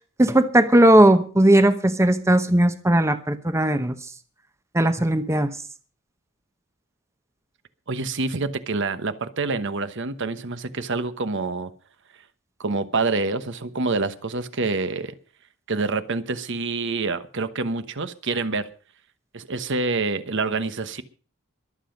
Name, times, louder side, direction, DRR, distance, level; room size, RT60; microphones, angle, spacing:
voice 1, 0.2-4.0 4.7-5.5, right 1 dB, 15° right, 11 dB, 0.9 m, -17 dB
voice 2, 7.9-11.7 12.6-15.1 15.7-18.7 19.3-21.0, right 3 dB, 60° right, 12 dB, 1.1 m, -27 dB
22.5 x 8.0 x 5.2 m, 0.41 s
head